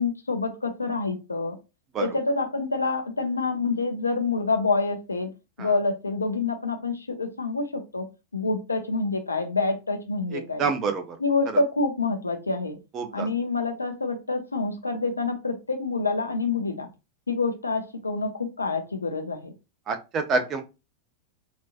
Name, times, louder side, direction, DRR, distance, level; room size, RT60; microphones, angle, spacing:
voice 1, 0.0-1.6 2.0-5.3 5.6-8.1 8.3-10.7 11.2-12.8 13.1-16.9 17.3-19.5, left 3 dB, 80° left, 0.7 m, -27 dB
voice 2, 10.3-11.2 12.9-13.3 19.9-20.6, right 4 dB, 30° right, 0.7 m, -27 dB
4.0 x 2.7 x 2.5 m
figure-of-eight pair, 90°, 0 cm